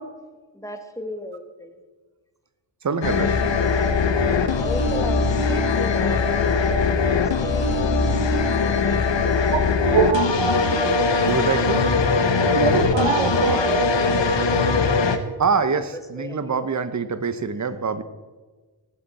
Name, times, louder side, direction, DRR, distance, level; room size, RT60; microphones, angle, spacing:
voice 1, 0.5-1.8 4.1-9.2 12.4-15.4 15.8-16.7, equal, 5° left, 6 dB, 1.2 m, -35 dB
voice 2, 2.8-3.5 11.3-11.8 15.4-18.0, right 5 dB, 35° right, 12 dB, 0.9 m, -25 dB
sound 1, 3.0-15.2, left 4 dB, 65° left, 1.1 m, -21 dB
voice 3, 9.5-10.9 11.4-11.5 12.4-13.6, right 5 dB, 85° right, 8 dB, 1.2 m, -23 dB
18.5 x 7.9 x 4.2 m, 1.3 s
cardioid pair, 80°, 47 cm